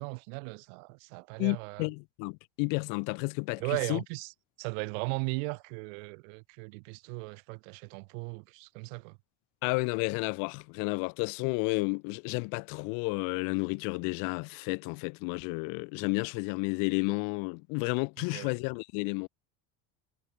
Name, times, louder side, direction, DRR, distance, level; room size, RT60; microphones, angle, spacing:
voice 1, 0.0-1.9 3.6-4.3 4.6-9.2 18.3-18.5, right 37 dB, 85° right, 0.9 m, -37 dB
voice 2, 1.4-4.0 9.6-19.3, left 35 dB, 60° left, 0.5 m, -31 dB
cardioid pair, 165°, 37 cm